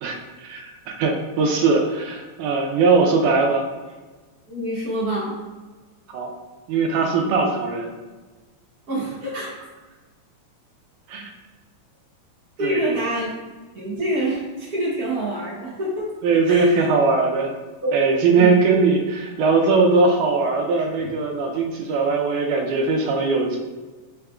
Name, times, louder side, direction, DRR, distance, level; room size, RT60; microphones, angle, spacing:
voice 1, 0.0-3.6 6.1-6.3 6.7-7.9 11.1-11.3 12.6-12.8 16.2-17.5 17.9-23.6, right 4 dB, 80° right, 1 dB, 2.1 m, -20 dB
voice 2, 4.5-5.3 8.9-9.5 12.6-13.3 13.7-16.0 16.4-16.8 17.8-17.9 18.3-18.5 21.0-21.1, right 1 dB, 50° right, -11 dB, 1.2 m, -26 dB
4.9 x 4.4 x 2.3 m, 1.3 s
omnidirectional pair, 3.5 m